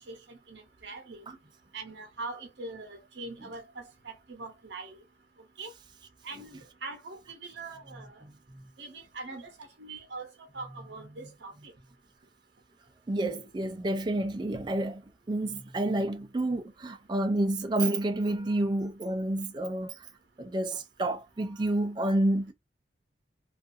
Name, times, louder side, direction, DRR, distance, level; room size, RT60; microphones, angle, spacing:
voice 1, 0.0-1.4 1.7-5.0 5.6-5.7 6.2-8.2 8.8-11.7, right 3 dB, 70° right, 0.7 m, -43 dB
voice 2, 7.9-8.3 10.7-11.3 13.1-15.0 15.3-20.0 20.4-22.5, right 1 dB, 25° right, 0.3 m, -30 dB
2.5 x 2.3 x 2.5 m
head